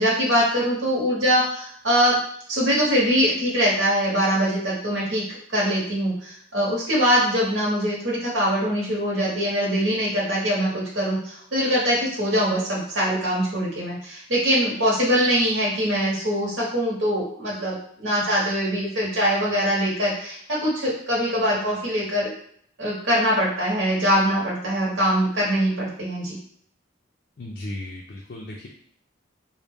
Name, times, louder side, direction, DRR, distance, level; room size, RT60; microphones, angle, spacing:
voice 1, 0.0-2.2 2.5-5.2 5.5-22.3 22.8-26.4, equal, 60° right, -6 dB, 0.9 m, -23 dB
voice 2, 27.4-28.7, left 1 dB, 45° left, -2 dB, 0.4 m, -35 dB
4.0 x 2.1 x 3.4 m, 0.63 s
head